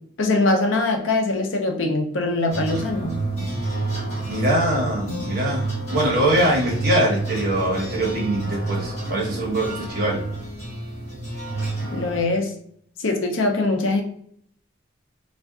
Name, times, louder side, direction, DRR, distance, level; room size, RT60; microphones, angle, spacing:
voice 1, 0.2-3.2 11.9-12.5 13.0-14.0, left 2 dB, 70° left, 3 dB, 0.6 m, -22 dB
sound 1, 2.5-12.2, right 2 dB, 30° left, 1.1 m, -29 dB
voice 2, 4.3-10.2, right 1 dB, 45° right, -3 dB, 1.1 m, -23 dB
3.5 x 2.5 x 2.3 m, 0.64 s
head